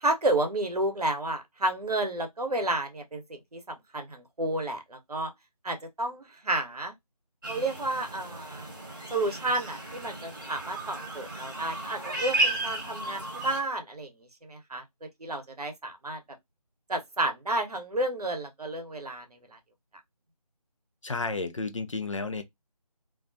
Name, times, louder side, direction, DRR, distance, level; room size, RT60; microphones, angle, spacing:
voice 1, 0.0-5.3 5.6-6.9 7.5-8.7 9.1-14.1 14.4-14.8 15.2-16.2 16.9-19.2, right 2 dB, 70° right, 0.8 m, -31 dB
sound 1, 7.4-13.6, right 2 dB, 30° right, 0.9 m, -34 dB
voice 2, 21.0-22.4, left 3 dB, 50° left, 0.4 m, -32 dB
2.3 x 2.1 x 2.5 m
figure-of-eight pair, 165°, 20 cm